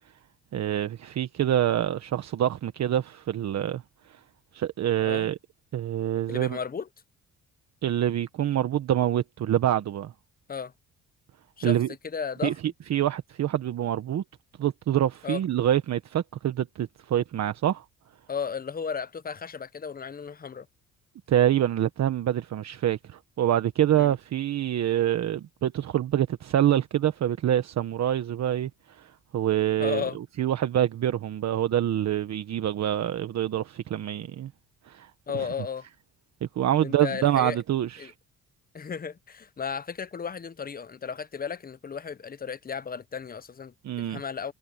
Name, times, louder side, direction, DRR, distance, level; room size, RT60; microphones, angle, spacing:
voice 1, 0.5-3.8 4.1-4.2 4.5-5.4 5.7-6.6 7.8-10.1 11.6-11.9 12.4-12.5 12.9-14.2 14.6-17.8 21.3-34.5 34.9-35.1 35.4-35.5 36.4-38.1 43.8-44.2, right 11 dB, 60° right, 1.2 m, -26 dB
voice 2, 6.3-6.9 10.5-10.7 11.6-11.8 12.0-12.5 15.2-15.4 18.3-20.7 23.9-24.1 29.8-30.2 35.3-35.9 36.8-37.6 38.0-38.1 38.7-43.7 44.1-44.5, left 6 dB, 30° left, 0.9 m, -34 dB
cardioid pair, 90°, 30 cm